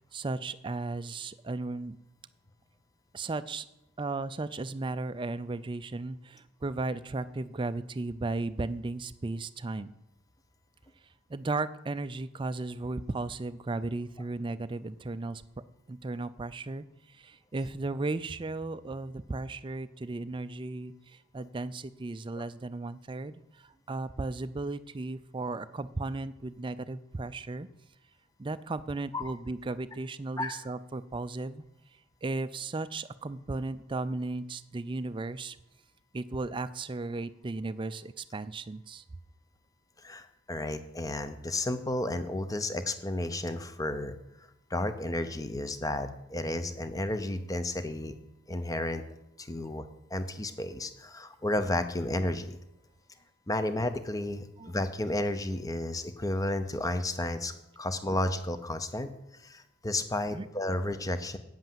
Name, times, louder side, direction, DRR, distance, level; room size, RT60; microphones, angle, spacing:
voice 1, 0.0-2.0 3.1-3.6 4.0-9.9 11.3-15.4 15.9-27.7 28.4-31.6 32.2-35.6 36.1-39.0 54.6-54.8 60.3-60.5, right 3 dB, 20° right, 12 dB, 0.4 m, -35 dB
voice 2, 40.0-44.1 44.7-48.1 48.5-49.0 49.4-49.9 50.1-52.6 53.5-59.1 59.4-61.4, left 1 dB, 15° left, 10 dB, 0.6 m, -32 dB
8.9 x 8.0 x 7.5 m, 0.88 s
head